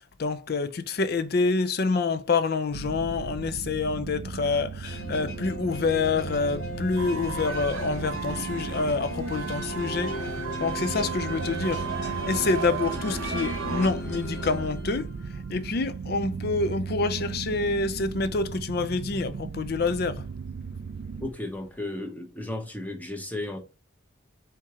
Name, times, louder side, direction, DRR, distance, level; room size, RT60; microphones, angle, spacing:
voice 1, 0.2-10.1 10.6-11.9 12.3-15.1 15.5-20.2, left 4 dB, 50° left, 0.5 m, -27 dB
sound 1, 2.7-21.3, right 5 dB, 55° right, 0.3 m, -37 dB
sound 2, 4.8-15.5, left 1 dB, 85° left, 1.7 m, -37 dB
sound 3, 7.0-13.9, right 4 dB, 85° right, 0.9 m, -35 dB
voice 2, 21.2-23.6, left 1 dB, 10° left, 0.9 m, -34 dB
4.5 x 3.6 x 2.9 m
head